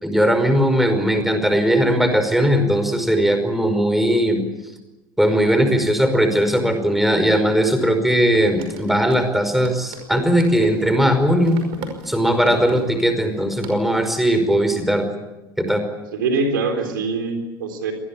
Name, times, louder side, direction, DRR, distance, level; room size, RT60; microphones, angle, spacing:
voice 1, 0.0-4.4 5.2-11.6 12.1-15.0 15.6-15.8, equal, ahead, 7 dB, 5.2 m, -18 dB
sound 1, 8.2-13.7, right 3 dB, 50° right, 5.4 m, -37 dB
voice 2, 16.1-17.9, right 3 dB, 70° right, 6 dB, 3.9 m, -23 dB
26.5 x 20.0 x 8.8 m, 1.0 s
figure-of-eight pair, 70°, 12 cm